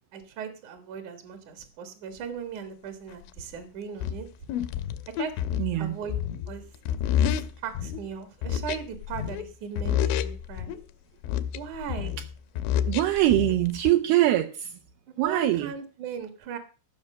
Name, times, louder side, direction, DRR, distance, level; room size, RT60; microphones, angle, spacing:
voice 1, 0.1-4.3 5.2-6.2 6.5-6.6 7.6-10.7 11.5-12.1 15.1-16.6, right 7 dB, 65° right, 8 dB, 2.0 m, -38 dB
sound 1, 3.3-3.4 4.0-8.1 8.4-9.5 9.8-10.8 11.2-13.9, left 9 dB, 85° left, 3.2 m, -29 dB
voice 2, 5.6-6.0 12.9-14.8 15.2-15.7, right 14 dB, 85° right, 5 dB, 2.2 m, -23 dB
15.5 x 6.0 x 6.5 m, 0.35 s
omnidirectional pair, 5.6 m